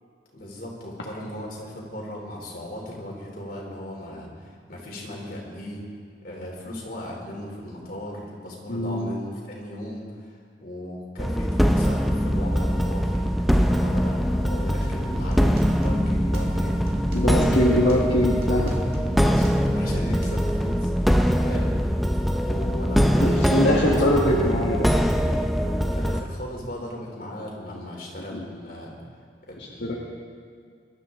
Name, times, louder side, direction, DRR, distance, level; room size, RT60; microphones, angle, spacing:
voice 1, 0.3-5.9 6.2-13.3 13.6-16.8 17.5-17.6 19.2-20.9 21.4-21.7 22.4-24.0 25.8-29.0 29.5-30.0, left 1 dB, 50° left, -2 dB, 3.4 m, -37 dB
voice 2, 8.7-9.1 17.1-18.7 23.2-24.9 28.3-28.4 29.6-30.0, left 1 dB, 65° left, -4 dB, 1.6 m, -22 dB
sound 1, 11.2-26.2, equal, ahead, 0.5 m, -22 dB
sound 2, 14.8-20.5, equal, 55° right, 2.2 m, -37 dB
22.0 x 13.0 x 3.8 m, 2.1 s
head